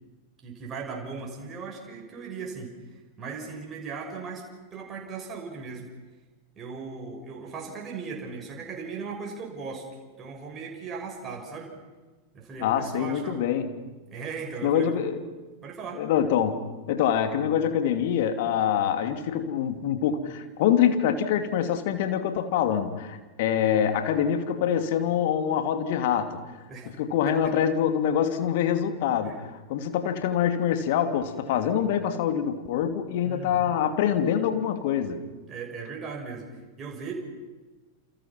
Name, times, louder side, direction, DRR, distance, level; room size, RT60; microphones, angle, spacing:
voice 1, 0.4-4.4 4.7-5.9 6.6-9.9 10.2-11.7 12.3-13.5 14.1-15.0 15.6-16.0 26.7-26.9 27.3-27.5 29.2-29.4 33.2-33.8 35.5-36.5 36.8-37.1, right 5 dB, 25° right, 0 dB, 6.5 m, -38 dB
voice 2, 12.6-13.7 14.6-15.2 15.9-16.6 16.9-26.4 27.0-35.2, left 9 dB, 50° left, 7 dB, 2.8 m, -25 dB
29.0 x 29.0 x 6.1 m, 1.3 s
figure-of-eight pair, 90°, 0 cm